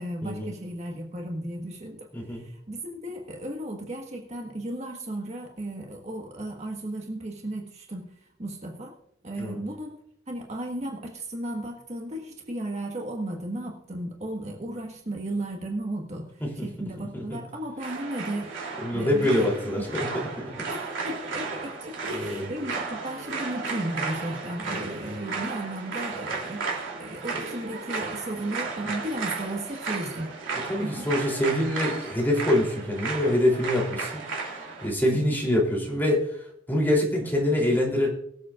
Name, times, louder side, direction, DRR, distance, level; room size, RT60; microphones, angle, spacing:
voice 1, 0.0-8.1 8.4-9.0 9.2-10.0 10.3-18.5 18.9-19.5 19.8-19.9 20.5-31.1 35.0-35.3, right 1 dB, 35° right, 1 dB, 1.5 m, -35 dB
voice 2, 2.1-2.5 9.4-9.6 16.4-16.7 17.1-17.4 18.8-20.7 22.1-22.5 30.5-34.2 34.8-38.1, left 1 dB, 10° left, -2 dB, 3.3 m, -25 dB
sound 1, 17.8-34.9, right 4 dB, 70° right, 3.1 m, -34 dB
23.0 x 8.0 x 2.5 m, 0.70 s
head